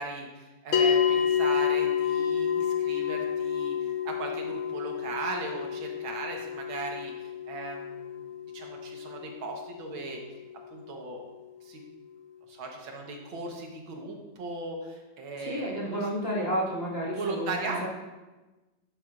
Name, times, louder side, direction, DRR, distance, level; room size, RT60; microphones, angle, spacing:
voice 1, 0.0-10.2 10.7-11.2 11.6-11.8 12.5-16.0 17.1-17.9, right 3 dB, 85° right, 1 dB, 2.0 m, -37 dB
sound 1, 0.7-11.3, left 8 dB, 85° left, 1.7 m, -30 dB
voice 2, 15.4-17.9, equal, 30° left, -6 dB, 2.1 m, -31 dB
11.0 x 8.7 x 2.5 m, 1.1 s
omnidirectional pair, 2.2 m